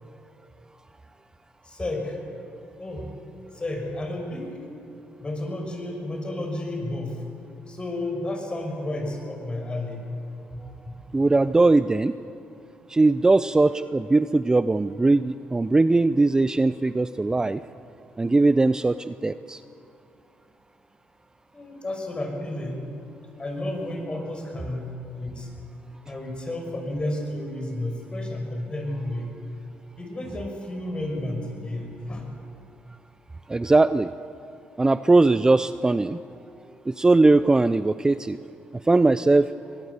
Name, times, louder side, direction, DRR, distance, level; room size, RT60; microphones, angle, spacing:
voice 1, 1.6-2.2 2.8-3.1 3.5-4.6 5.2-7.2 7.7-10.0 10.5-11.0 21.5-22.8 23.4-25.5 26.1-29.3 30.0-32.3, left 1 dB, 25° left, 3 dB, 5.8 m, -32 dB
voice 2, 11.1-12.1 12.9-17.6 18.2-19.6 33.5-34.1 34.8-36.2 36.9-38.4 38.9-39.5, right 2 dB, 20° right, 13 dB, 0.5 m, -20 dB
23.5 x 18.5 x 8.2 m, 2.6 s
cardioid pair, 85°, 4 cm